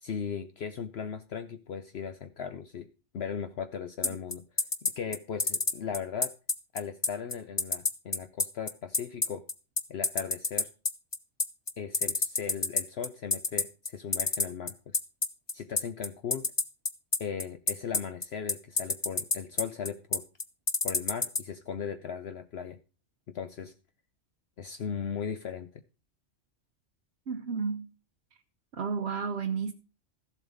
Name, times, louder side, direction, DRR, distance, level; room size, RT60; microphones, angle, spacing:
voice 1, 0.0-2.9 3.1-6.3 6.7-9.4 9.9-10.7 11.8-15.0 15.5-16.5 17.2-20.2 20.8-22.8 23.3-23.7 24.6-25.7, left 7 dB, 60° left, 1.0 m, -37 dB
sound 1, 4.0-21.4, left 4 dB, 25° left, 0.7 m, -27 dB
voice 2, 27.3-27.9 28.8-29.7, right 5 dB, 65° right, 1.1 m, -31 dB
14.0 x 7.6 x 5.0 m
omnidirectional pair, 1.2 m